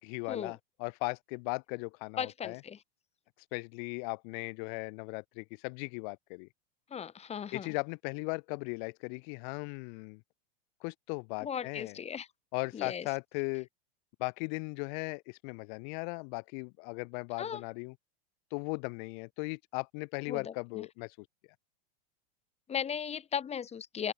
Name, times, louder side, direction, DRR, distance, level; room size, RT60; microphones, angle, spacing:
voice 1, 0.0-2.6 3.5-6.5 7.5-10.2 10.8-11.9 12.5-13.7 14.2-17.9 18.5-21.1, left 39 dB, 55° left, 4.3 m, -37 dB
voice 2, 2.2-2.8 6.9-7.7 11.4-12.3 12.7-13.1 17.4-17.6 20.3-20.9 22.7-24.1, left 7 dB, 20° left, 5.3 m, -37 dB
open air
supercardioid pair, 145°, 31 cm